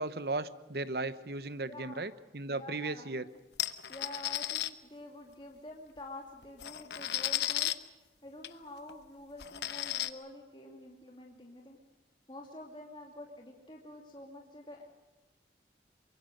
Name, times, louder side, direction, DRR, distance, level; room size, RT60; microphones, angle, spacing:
voice 1, 0.0-3.2, right 2 dB, 60° right, 14 dB, 1.0 m, -36 dB
voice 2, 1.7-2.0 2.5-3.1 3.9-7.7 8.2-11.8 12.3-14.8, left 1 dB, 30° left, 0 dB, 2.5 m, -48 dB
sound 1, 3.6-4.7 6.0-6.1 6.4-7.7 8.4-8.5 8.9-9.0 9.4-10.1, left 13 dB, 75° left, 1.0 m, -34 dB
24.0 x 23.0 x 6.6 m, 1.1 s
head